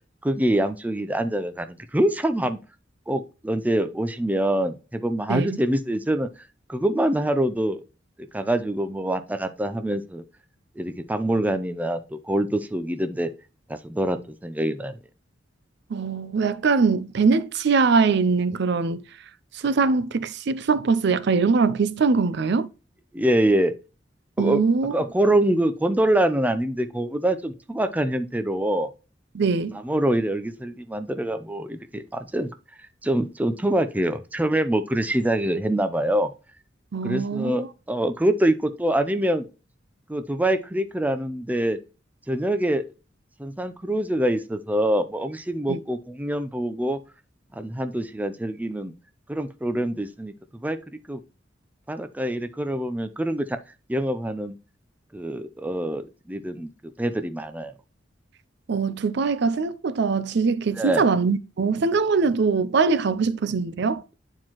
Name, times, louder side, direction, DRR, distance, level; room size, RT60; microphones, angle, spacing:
voice 1, 0.2-2.6 3.1-6.3 6.7-7.8 8.3-10.2 10.8-13.3 13.7-14.9 23.1-23.7 24.4-24.6 24.9-28.9 29.8-32.5 33.0-36.3 37.0-39.5 40.1-41.8 42.3-42.8 43.4-47.0 47.5-48.9 49.3-50.3 50.6-50.8 51.1-51.2 51.9-53.6 53.9-54.6 55.1-56.7 57.0-57.7 60.8-61.0, right 1 dB, 10° right, 0.5 m, -25 dB
voice 2, 15.9-19.0 19.5-22.7 24.4-25.0 29.3-29.8 36.9-37.6 45.7-45.8 58.7-64.0, right 4 dB, 60° right, 0.5 m, -22 dB
9.4 x 4.5 x 2.9 m
head